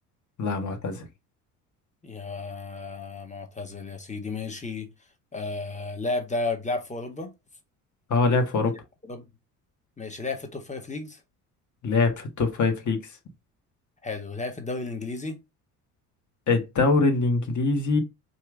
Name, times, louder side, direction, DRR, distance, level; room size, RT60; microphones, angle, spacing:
voice 1, 0.4-1.1 8.1-8.7 11.8-13.1 16.5-18.0, left 3 dB, 40° left, 1.6 m, -23 dB
voice 2, 2.0-4.9 5.3-7.3 9.1-9.3 10.0-11.2 14.0-15.4, left 3 dB, 15° left, 1.3 m, -33 dB
4.5 x 2.9 x 3.7 m
hypercardioid pair, 55°, 45 cm